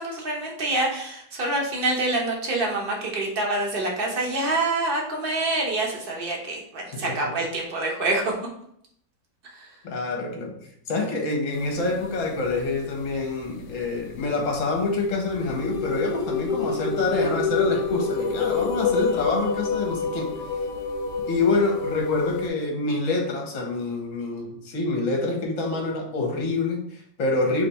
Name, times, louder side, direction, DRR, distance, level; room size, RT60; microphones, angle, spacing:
voice 1, 0.0-8.3 9.5-9.7, right 2 dB, 40° right, -1 dB, 1.0 m, -26 dB
voice 2, 9.8-10.5 10.9-20.3 21.3-27.7, left 3 dB, 55° left, 1 dB, 1.3 m, -26 dB
sound 1, 11.5-12.7 13.2-13.3 14.2-14.3 14.5-14.6 15.0-22.5, left 4 dB, 90° left, 1.2 m, -28 dB
3.4 x 3.3 x 4.1 m, 0.70 s
omnidirectional pair, 1.8 m